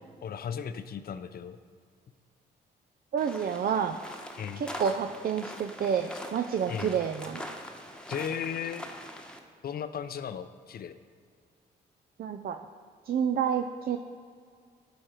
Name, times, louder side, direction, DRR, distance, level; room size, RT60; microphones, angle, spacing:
voice 1, 0.2-1.6 4.4-4.6 6.7-6.9 8.1-8.8 9.6-11.0, left 8 dB, 55° left, 12 dB, 0.6 m, -36 dB
voice 2, 3.1-4.0 4.6-7.4 12.2-12.6 13.1-14.0, right 7 dB, 55° right, 6 dB, 0.5 m, -29 dB
sound 1, 3.2-9.4, equal, 5° left, 1.1 m, -43 dB
11.5 x 4.9 x 4.5 m, 2.2 s
supercardioid pair, 60°, 19 cm